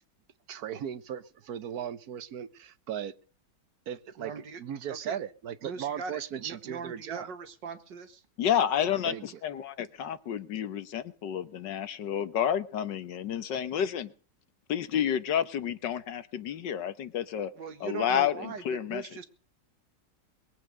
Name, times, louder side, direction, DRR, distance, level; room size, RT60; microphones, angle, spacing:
voice 1, 0.5-3.1 3.9-4.3 4.6-7.3 9.0-9.2, right 9 dB, 60° right, 1.3 m, -37 dB
voice 2, 4.2-4.6 4.9-5.2 5.6-8.2 17.5-19.2, right 5 dB, 80° right, 2.3 m, -40 dB
voice 3, 8.4-14.1 14.7-17.5 17.8-19.0, left 9 dB, 80° left, 1.7 m, -30 dB
21.5 x 8.3 x 6.4 m
omnidirectional pair, 1.9 m